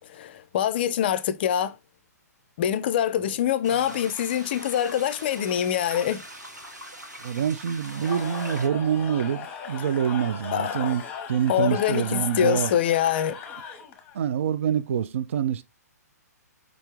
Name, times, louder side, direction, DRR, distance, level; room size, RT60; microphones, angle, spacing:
voice 1, 0.0-1.7 2.6-6.2 10.5-10.9 11.5-13.4, left 10 dB, 35° left, 0.4 m, -25 dB
sound 1, 3.6-8.7, right 1 dB, 90° right, 1.4 m, -42 dB
voice 2, 7.2-11.0 11.3-12.8 14.1-15.6, right 8 dB, 50° right, 0.3 m, -26 dB
Cheering / Crowd, 7.8-14.2, left 7 dB, 20° left, 0.8 m, -38 dB
5.1 x 3.3 x 2.9 m
figure-of-eight pair, 125°, 9 cm